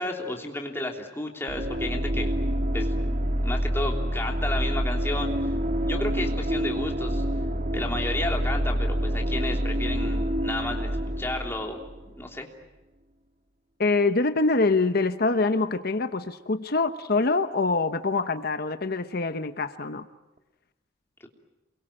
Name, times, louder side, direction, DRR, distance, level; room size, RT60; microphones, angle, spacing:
voice 1, 0.0-2.3 2.7-2.9 3.3-5.3 5.8-7.2 7.7-11.8 12.2-12.5, left 1 dB, 15° left, 1 dB, 3.3 m, -32 dB
sound 1, 1.5-12.3, equal, 45° right, 1.9 m, -27 dB
voice 2, 13.8-20.0, left 3 dB, 55° left, 10 dB, 1.0 m, -25 dB
28.5 x 23.0 x 8.8 m, 1.0 s
head